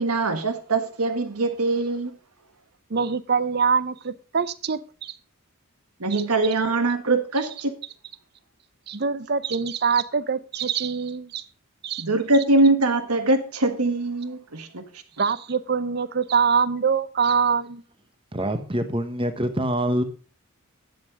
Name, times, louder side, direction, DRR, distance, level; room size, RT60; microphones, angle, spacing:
voice 1, 0.0-2.1 6.0-7.8 12.0-14.8, right 2 dB, 85° right, 1.6 m, -22 dB
voice 2, 2.9-5.1 6.1-6.2 8.9-11.4 11.8-12.0 15.2-17.8, right 6 dB, 45° right, 0.6 m, -24 dB
voice 3, 18.3-20.0, equal, 25° right, 1.1 m, -25 dB
10.5 x 7.8 x 4.8 m
head